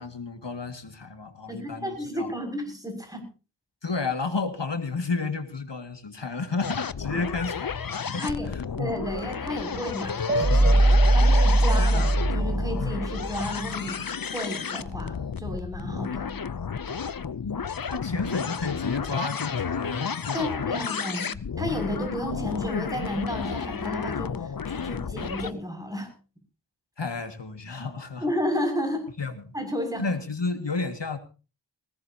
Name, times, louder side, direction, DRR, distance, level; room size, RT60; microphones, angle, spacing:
voice 1, 0.0-2.3 3.8-7.8 8.1-8.6 17.4-17.6 17.9-20.4 27.0-28.3 29.2-29.5 30.0-31.2, left 4 dB, 80° left, 7 dB, 2.1 m, -31 dB
voice 2, 1.5-3.3 7.1-7.2 8.1-8.5 8.8-10.1 10.4-16.4 20.3-24.4 24.7-26.1 28.2-29.0 29.5-30.0, equal, 10° right, 4 dB, 6.9 m, -32 dB
sound 1, 6.6-25.5, left 6 dB, 55° left, 0.7 m, -32 dB
sound 2, 10.3-13.5, right 1 dB, 25° right, 0.9 m, -20 dB
20.0 x 18.0 x 2.9 m, 0.34 s
wide cardioid pair, 40°, 42 cm